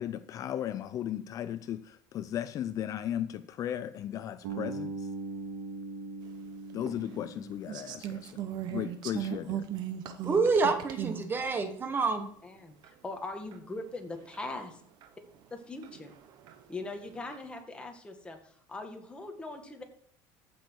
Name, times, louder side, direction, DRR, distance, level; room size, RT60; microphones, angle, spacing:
voice 1, 0.0-5.1 6.7-8.4 8.7-9.7, left 11 dB, 45° left, 0.5 m, -36 dB
Bass guitar, 4.4-8.5, right 3 dB, 85° right, 3.0 m, -40 dB
sound 1, 6.9-7.0 7.7-11.2 12.0-12.1 12.8-12.9 13.5-13.6 14.3-14.4 15.0-15.1 15.8-16.6 17.1-17.4, right 11 dB, 60° right, 1.3 m, -37 dB
voice 2, 10.2-12.3, right 4 dB, 25° right, 1.4 m, -27 dB
voice 3, 12.4-14.7 15.5-16.1 16.7-19.8, left 2 dB, 15° left, 2.0 m, -41 dB
15.0 x 6.2 x 4.7 m
cardioid pair, 125°, 8 cm